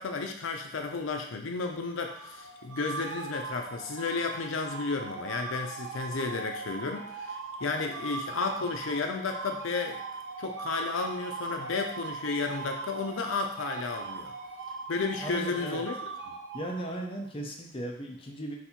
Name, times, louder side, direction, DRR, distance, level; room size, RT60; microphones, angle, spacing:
voice 1, 0.0-10.0 10.4-14.3 14.9-16.0 16.3-16.4, left 4 dB, 80° left, 4 dB, 0.5 m, -33 dB
sound 1, 2.0-17.2, right 4 dB, 65° right, 0.5 m, -40 dB
voice 2, 15.2-15.8 16.5-18.6, right 1 dB, 30° left, 1 dB, 0.6 m, -37 dB
4.1 x 2.7 x 4.3 m, 0.76 s
head